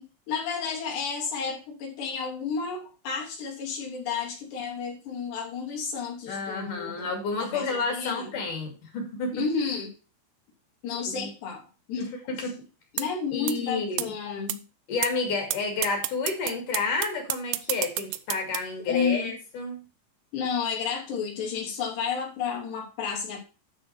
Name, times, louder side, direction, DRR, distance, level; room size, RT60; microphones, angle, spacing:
voice 1, 0.0-7.1 7.4-8.3 9.3-9.9 10.8-11.6 11.9-12.1 12.9-14.6 18.8-19.3 20.3-23.4, left 6 dB, 85° left, -1 dB, 5.1 m, -31 dB
voice 2, 6.3-9.5 11.1-11.3 12.0-12.6 13.3-14.1 14.9-19.9, left 4 dB, 55° left, 3 dB, 3.7 m, -30 dB
sound 1, 13.0-13.1 13.5-13.6 14.0-14.1 14.5-14.6 15.0-15.1 15.5-15.6 15.8-18.6, right 16 dB, 80° right, 2.6 m, -28 dB
12.5 x 4.6 x 5.8 m, 0.32 s
omnidirectional pair, 4.8 m